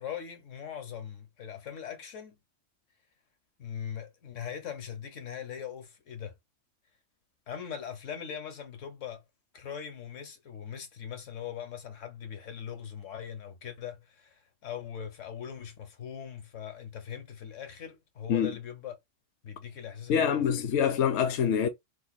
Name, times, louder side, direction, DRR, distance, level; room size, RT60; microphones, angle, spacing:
voice 1, 0.0-2.4 3.6-6.4 7.5-9.2 9.5-19.0 19.4-20.4, left 8 dB, 85° left, 1.4 m, -40 dB
voice 2, 20.1-21.7, left 8 dB, 70° left, 0.9 m, -25 dB
2.8 x 2.6 x 3.9 m
omnidirectional pair, 1.2 m